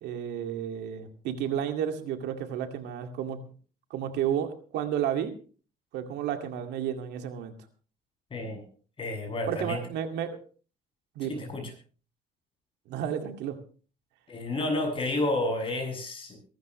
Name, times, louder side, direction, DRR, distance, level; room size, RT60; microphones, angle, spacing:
voice 1, 0.0-3.4 3.9-5.3 5.9-7.5 9.5-10.4 11.2-11.5 12.9-13.6, right 9 dB, 85° right, 6 dB, 2.2 m, -32 dB
voice 2, 8.3-8.6 9.0-9.8 11.2-11.6 14.3-16.4, left 2 dB, 30° left, 2 dB, 7.4 m, -30 dB
23.0 x 13.0 x 3.2 m, 0.37 s
cardioid pair, 110°, 17 cm